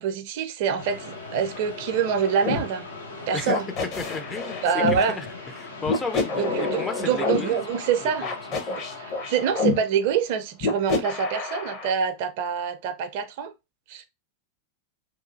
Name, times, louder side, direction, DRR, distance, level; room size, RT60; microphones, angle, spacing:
voice 1, 0.0-2.9 3.3-3.7 4.6-5.2 6.3-8.3 8.7-13.5 13.9-14.0, right 7 dB, 50° right, 0.4 m, -26 dB
sound 1, 0.8-11.0, left 3 dB, 75° left, 0.7 m, -40 dB
sound 2, 2.4-2.6 3.5-5.0 5.8-7.4 8.2-9.7 10.6-11.9, left 4 dB, 40° left, 0.8 m, -27 dB
voice 2, 4.0-7.6 8.2-8.3 8.6-8.8, left 4 dB, 15° left, 0.4 m, -34 dB
2.9 x 2.4 x 2.4 m
figure-of-eight pair, 90°, 0 cm